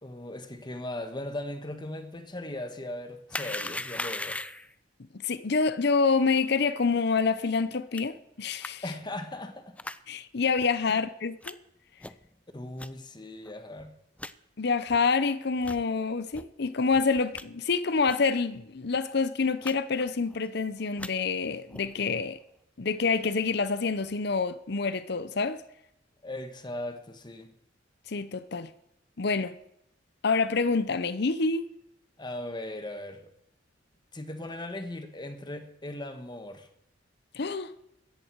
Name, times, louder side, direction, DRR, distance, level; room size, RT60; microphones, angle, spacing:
voice 1, 0.0-4.4 8.8-9.8 10.9-11.0 12.5-14.0 26.2-27.5 32.2-33.3 34.1-36.7, left 1 dB, 25° left, 1.5 m, -38 dB
sound 1, 3.3-4.7 8.0-8.1 8.6-8.7 9.8-10.0 10.6-10.7 11.4-11.5 12.0-12.3 12.8-12.9 13.5-13.6 13.8-13.9 14.2-14.3 14.9-15.0 15.6-15.8 16.3-16.5 16.9-17.4 18.1-18.3 18.5-18.6 18.9-19.1 19.6-19.7 20.0-20.4 20.8-21.1 21.7-22.0, left 2 dB, 5° left, 0.5 m, -38 dB
voice 2, 5.2-8.8 10.1-11.6 14.6-22.4 22.8-25.6 28.1-28.7 29.2-29.5 30.2-31.7 37.3-37.7, left 4 dB, 60° left, 0.7 m, -27 dB
17.0 x 14.0 x 4.7 m
head